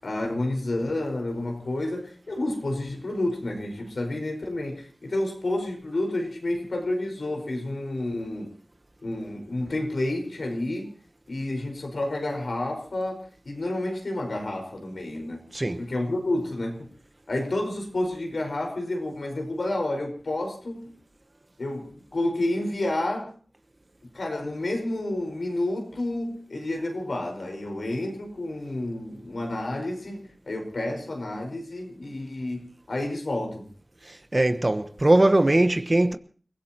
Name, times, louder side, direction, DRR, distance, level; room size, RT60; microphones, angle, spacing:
voice 1, 0.0-8.5 9.0-10.9 11.3-15.4 15.8-16.8 17.3-20.9 21.6-23.3 24.1-33.7, left 1 dB, 85° left, 4.9 m, -30 dB
voice 2, 15.5-15.8 34.0-36.2, right 1 dB, 35° right, 1.0 m, -21 dB
30.0 x 16.5 x 3.0 m
wide cardioid pair, 65°, 0 cm